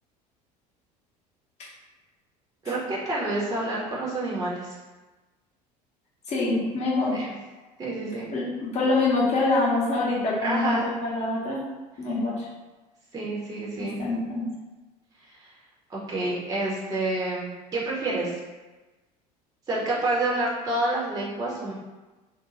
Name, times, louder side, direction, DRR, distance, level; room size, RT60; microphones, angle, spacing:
voice 1, 2.6-4.8 7.1-7.3 7.8-8.3 10.4-10.8 13.1-14.0 15.2-15.5 15.9-18.3 19.7-21.7, right 2 dB, 15° right, -5 dB, 0.6 m, -28 dB
voice 2, 6.3-7.3 8.3-8.4 8.7-11.6 12.0-12.5 14.0-14.4, left 2 dB, 30° left, -4 dB, 0.8 m, -25 dB
2.5 x 2.2 x 2.9 m, 1.2 s
figure-of-eight pair, 65°, 21 cm